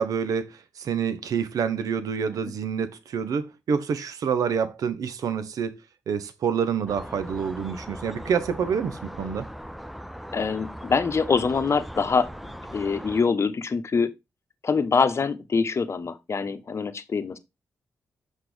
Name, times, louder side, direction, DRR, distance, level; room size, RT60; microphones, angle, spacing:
voice 1, 0.0-9.5, right 6 dB, 75° right, 0.9 m, -27 dB
sound 1, 6.9-13.2, equal, ahead, 0.6 m, -39 dB
voice 2, 10.3-12.3 12.7-14.1 14.6-17.4, left 5 dB, 50° left, 1.0 m, -24 dB
6.0 x 5.5 x 3.3 m
supercardioid pair, 55°, 6 cm